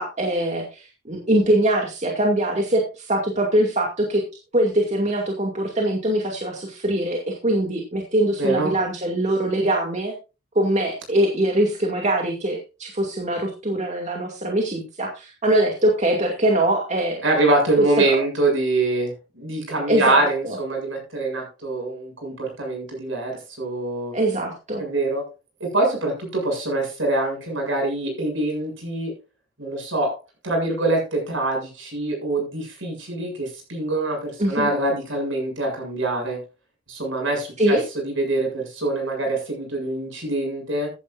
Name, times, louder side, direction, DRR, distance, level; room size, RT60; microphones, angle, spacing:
voice 1, 0.0-4.2 4.5-10.1 10.5-17.2 19.9-20.6 24.1-24.8 34.4-34.7 37.6-37.8, right 1 dB, 35° right, 0 dB, 2.4 m, -22 dB
voice 2, 8.4-8.7 17.2-24.1 24.8-25.3 25.6-29.1 29.6-30.2 30.4-36.4 36.9-37.8 38.0-40.9, right 2 dB, 65° right, 1 dB, 7.5 m, -24 dB
15.0 x 11.0 x 2.6 m, 0.30 s
head